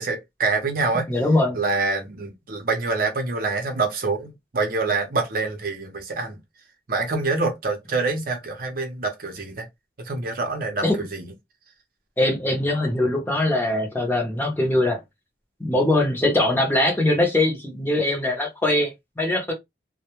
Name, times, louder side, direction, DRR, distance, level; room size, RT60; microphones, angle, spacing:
voice 1, 0.0-1.1 1.5-6.4 6.9-9.7 10.0-11.3, right 3 dB, 55° right, 0.6 m, -26 dB
voice 2, 1.1-1.6 10.8-10.9 12.2-15.0 15.6-19.5, left 1 dB, 10° left, 0.7 m, -22 dB
2.1 x 2.1 x 2.9 m
head